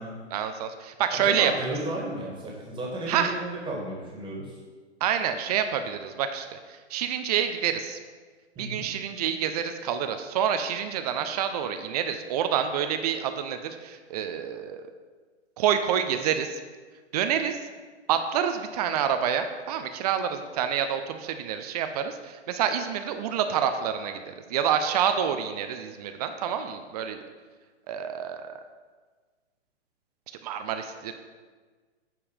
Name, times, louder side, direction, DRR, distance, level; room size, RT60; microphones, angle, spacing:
voice 1, 0.3-1.5 3.1-3.3 5.0-6.6 6.9-8.0 8.6-14.9 15.6-16.6 17.1-17.6 18.1-27.2 27.9-28.6 30.4-31.1, right 8 dB, 35° right, 8 dB, 0.6 m, -27 dB
voice 2, 1.1-4.6 8.6-8.8, right 1 dB, 15° right, -3 dB, 2.0 m, -33 dB
8.8 x 4.7 x 5.1 m, 1.4 s
figure-of-eight pair, 120°, 35 cm